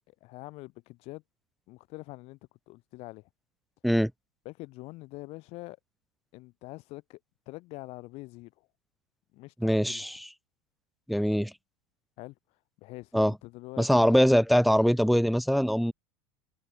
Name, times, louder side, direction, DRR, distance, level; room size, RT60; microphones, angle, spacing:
voice 1, 0.1-1.2 1.7-2.4 2.7-3.3 4.4-5.8 6.3-7.2 7.5-8.5 9.3-10.2 12.2-12.3 12.8-14.2, left 21 dB, 55° left, 1.1 m, -44 dB
voice 2, 9.6-10.2 11.1-11.5 13.1-13.3 13.8-15.9, equal, ahead, 0.3 m, -23 dB
supercardioid pair, 125°, 13 cm